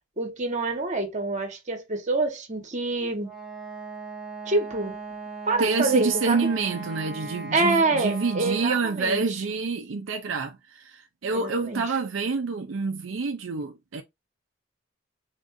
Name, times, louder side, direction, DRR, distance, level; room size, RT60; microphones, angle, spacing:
voice 1, 0.2-3.3 4.4-5.0 5.5-6.5 7.5-9.5 11.3-11.8, right 3 dB, 40° right, 1.2 m, -26 dB
Wind instrument woodwind instrument, 3.2-8.9, right 3 dB, 5° right, 1.1 m, -38 dB
voice 2, 5.6-14.0, right 4 dB, 75° right, 0.5 m, -27 dB
3.7 x 2.6 x 3.7 m
head